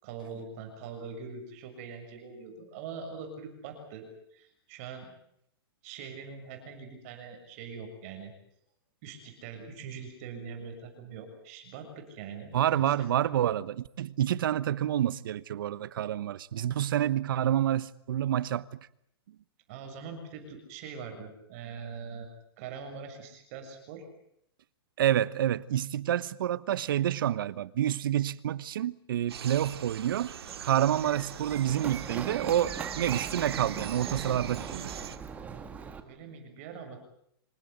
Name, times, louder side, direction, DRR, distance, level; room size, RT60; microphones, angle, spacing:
voice 1, 0.0-4.1 4.3-5.1 5.8-8.3 9.0-13.1 19.7-22.3 22.6-24.1 36.0-37.0, right 5 dB, 35° right, 7.0 m, -43 dB
voice 2, 12.5-18.7 25.0-30.3 30.6-34.9, right 11 dB, 60° right, 1.1 m, -28 dB
sound 1, 29.3-35.2, right 9 dB, 80° right, 2.4 m, -41 dB
Run, 30.4-36.0, right 6 dB, 10° right, 1.9 m, -41 dB
26.5 x 17.0 x 9.4 m
hypercardioid pair, 165°, 13 cm